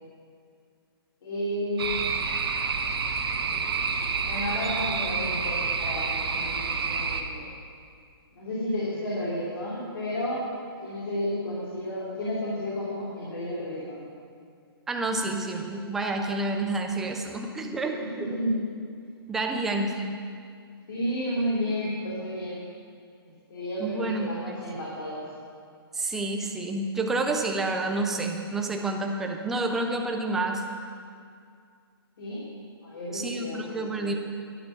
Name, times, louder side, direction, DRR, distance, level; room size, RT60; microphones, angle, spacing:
voice 1, 1.2-2.1 4.2-7.5 8.3-10.4 10.8-14.0 18.0-18.6 20.9-22.6 23.5-25.2 32.2-32.4 32.8-34.1, left 1 dB, 60° left, -6 dB, 2.9 m, -32 dB
sound 1, 1.8-7.2, right 5 dB, 70° right, 1.1 m, -28 dB
voice 2, 14.9-18.0 19.3-20.2 23.8-24.6 25.9-30.6 33.1-34.1, right 2 dB, 5° right, 2 dB, 0.3 m, -29 dB
11.0 x 11.0 x 5.7 m, 2.3 s
hypercardioid pair, 170°, 13 cm